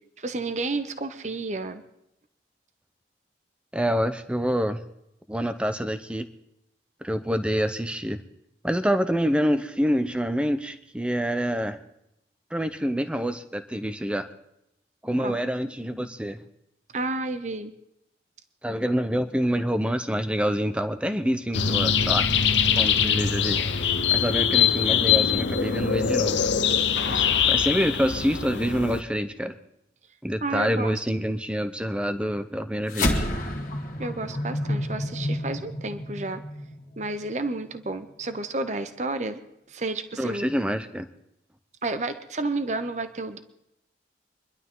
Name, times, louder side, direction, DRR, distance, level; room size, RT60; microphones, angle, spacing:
voice 1, 0.2-1.8 15.2-15.4 16.9-17.7 30.4-31.3 34.0-36.4 37.0-39.4 39.7-40.5 41.8-43.4, right 2 dB, 40° right, 10 dB, 0.9 m, -31 dB
voice 2, 3.7-4.8 5.3-6.3 7.0-8.2 8.6-11.8 12.5-14.3 15.0-16.4 18.6-22.3 22.8-23.8 24.1-26.5 27.1-29.5 30.2-33.3 40.2-41.1, equal, 5° right, 10 dB, 0.8 m, -27 dB
sound 1, 21.5-29.0, left 7 dB, 85° left, 0.9 m, -23 dB
sound 2, 32.9-37.5, left 1 dB, 45° left, 1.9 m, -29 dB
25.0 x 11.5 x 3.9 m, 0.83 s
head